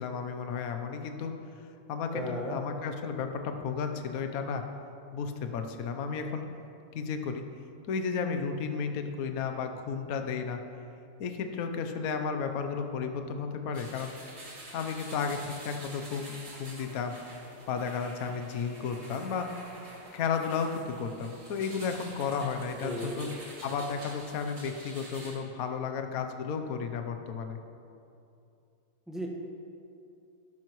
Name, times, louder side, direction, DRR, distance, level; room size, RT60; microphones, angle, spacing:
voice 1, 0.0-1.3 1.9-4.6 5.1-6.4 6.9-7.4 7.9-10.6 11.2-14.1 14.7-16.3 16.6-17.1 17.7-19.5 20.1-23.3 23.6-27.6, left 6 dB, 60° left, 6 dB, 0.9 m, -33 dB
voice 2, 2.1-2.6 22.8-23.3 29.1-29.3, equal, ahead, -2 dB, 0.8 m, -35 dB
sound 1, 13.7-25.3, right 1 dB, 35° right, 2.7 m, -47 dB
13.5 x 12.0 x 3.1 m, 2.6 s
omnidirectional pair, 2.4 m